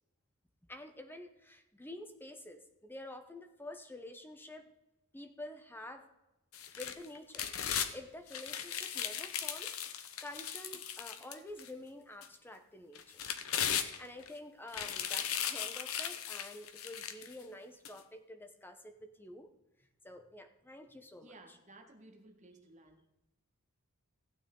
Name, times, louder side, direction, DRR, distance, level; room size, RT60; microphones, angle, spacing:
voice 1, 0.7-4.7 5.1-6.1 6.7-13.2 13.8-19.5 20.0-21.6, left 1 dB, 10° left, 7 dB, 0.8 m, -49 dB
sound 1, 6.5-7.9 8.3-11.7 12.2-12.3 12.9-14.3 14.7-17.3 17.8-17.9, left 9 dB, 70° left, 0.9 m, -37 dB
voice 2, 21.2-23.1, right 2 dB, 35° right, 3 dB, 1.6 m, -57 dB
16.0 x 9.0 x 3.8 m, 0.96 s
head